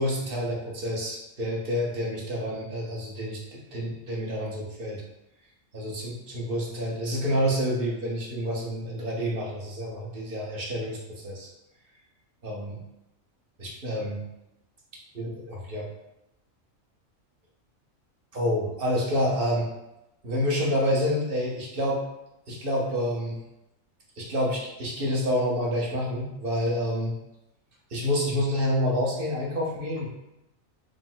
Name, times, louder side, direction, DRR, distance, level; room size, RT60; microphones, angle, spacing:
voice 1, 0.0-5.0 5.7-6.0 6.3-11.5 12.4-12.7 13.6-14.2 15.1-15.9 18.3-19.7 20.2-22.0 22.5-23.4 24.2-27.1 27.9-30.1, equal, 45° right, -3 dB, 1.1 m, -28 dB
5.2 x 2.1 x 3.8 m, 0.92 s
omnidirectional pair, 1.4 m